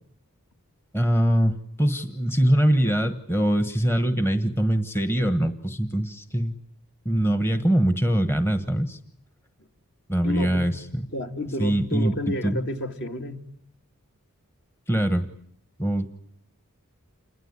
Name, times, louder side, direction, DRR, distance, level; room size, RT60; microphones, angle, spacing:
voice 1, 0.9-6.5 7.0-9.0 10.1-11.1 11.6-12.6 14.9-15.3 15.8-16.1, right 1 dB, 10° left, 1.1 m, -23 dB
voice 2, 10.2-13.4, left 1 dB, 55° left, 2.5 m, -31 dB
28.5 x 21.5 x 9.7 m
head